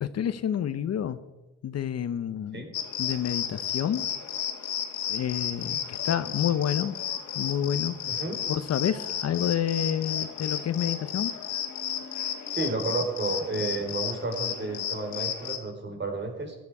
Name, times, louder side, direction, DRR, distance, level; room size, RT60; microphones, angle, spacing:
voice 1, 0.0-1.2 1.6-2.6 3.0-4.0 5.1-7.0 7.3-7.9 8.5-11.3, left 9 dB, 55° left, 13 dB, 0.9 m, -29 dB
sound 1, 2.7-15.6, left 9 dB, 80° left, 2.1 m, -33 dB
voice 2, 8.1-8.4 12.5-16.6, right 3 dB, 35° right, 3 dB, 4.2 m, -31 dB
15.5 x 11.5 x 4.8 m, 1.1 s
cardioid pair, 90°, 30 cm